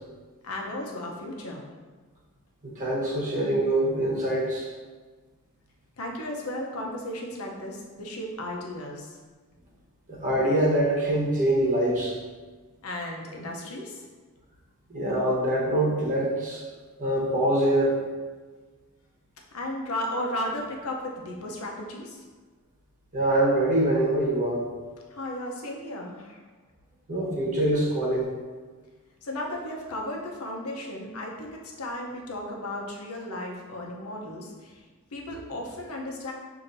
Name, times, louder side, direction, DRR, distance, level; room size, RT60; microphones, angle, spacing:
voice 1, 0.4-1.6 6.0-9.2 12.8-14.0 19.5-22.2 25.1-26.4 29.2-34.9 35.1-36.3, left 1 dB, 85° left, 0 dB, 0.8 m, -35 dB
voice 2, 2.6-4.7 10.1-12.1 14.9-16.6 17.0-18.0 23.1-24.6 27.1-28.3, right 1 dB, 40° right, -5 dB, 1.2 m, -24 dB
6.8 x 2.8 x 2.7 m, 1.4 s
head